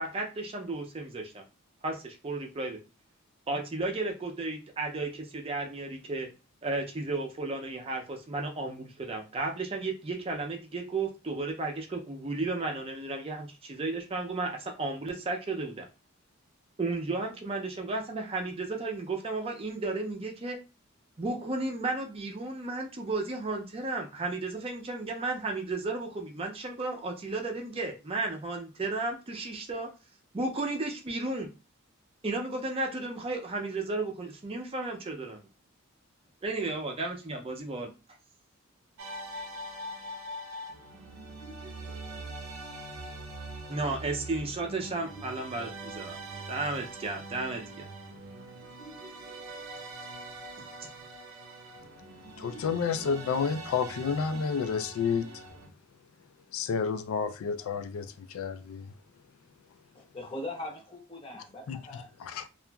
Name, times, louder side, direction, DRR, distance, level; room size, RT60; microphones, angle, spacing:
voice 1, 0.0-1.4 1.8-2.8 3.5-6.3 6.6-15.9 16.8-20.6 21.2-29.9 30.3-31.5 32.2-35.5 36.4-37.9 43.7-46.2 46.5-47.9, right 3 dB, 25° right, 0.4 m, -33 dB
sound 1, 39.0-55.7, right 1 dB, 85° right, 0.6 m, -43 dB
voice 2, 52.4-55.3 56.5-58.9 61.7-61.8 62.2-62.5, left 6 dB, 75° left, 0.3 m, -30 dB
voice 3, 59.9-62.5, left 1 dB, 25° left, 0.6 m, -41 dB
2.7 x 2.4 x 2.2 m
head